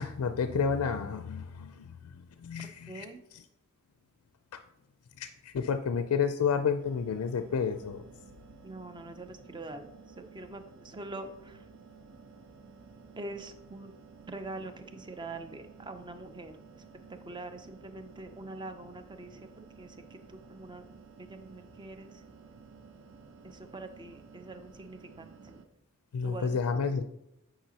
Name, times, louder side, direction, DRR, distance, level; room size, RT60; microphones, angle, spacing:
voice 1, 0.0-3.1 4.5-4.6 5.2-8.0 26.1-27.0, left 6 dB, 90° left, 9 dB, 0.4 m, -30 dB
voice 2, 2.9-3.2 8.6-11.7 13.2-13.9 14.3-16.6 17.1-20.8 21.2-22.2 23.4-25.6 26.2-26.7, right 2 dB, 20° right, 8 dB, 0.5 m, -44 dB
sound 1, 6.8-25.7, right 4 dB, 60° right, 0.6 m, -53 dB
8.9 x 4.9 x 2.8 m, 0.83 s
head